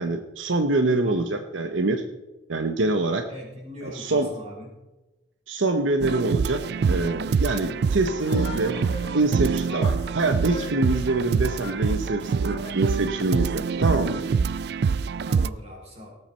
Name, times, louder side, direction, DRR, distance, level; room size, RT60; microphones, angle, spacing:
voice 1, 0.0-2.0 2.5-3.2 3.8-4.3 5.5-8.8 9.1-14.2, right 2 dB, 75° right, 7 dB, 0.9 m, -25 dB
voice 2, 3.3-4.7 15.2-16.1, left 1 dB, 30° right, -2 dB, 4.0 m, -40 dB
sound 1, 6.0-15.5, right 5 dB, 55° right, 0.3 m, -25 dB
Human voice, 8.1-9.3 9.7-12.0 12.4-13.0 13.6-14.3, left 2 dB, 25° left, 4.3 m, -41 dB
18.5 x 8.1 x 4.4 m, 1.1 s
head